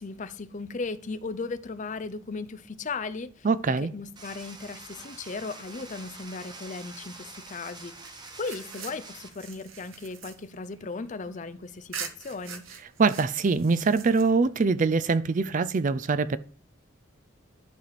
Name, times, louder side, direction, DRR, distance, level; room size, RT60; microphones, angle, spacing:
voice 1, 0.0-3.5 3.8-12.7, left 4 dB, 40° left, 0.6 m, -37 dB
voice 2, 3.4-3.9 13.0-16.4, right 4 dB, 40° right, 0.4 m, -23 dB
sound 1, 4.2-9.3, right 3 dB, 20° right, 1.0 m, -46 dB
sound 2, 8.0-11.4 11.9-14.6, right 6 dB, 75° right, 0.9 m, -43 dB
11.5 x 4.7 x 4.1 m
head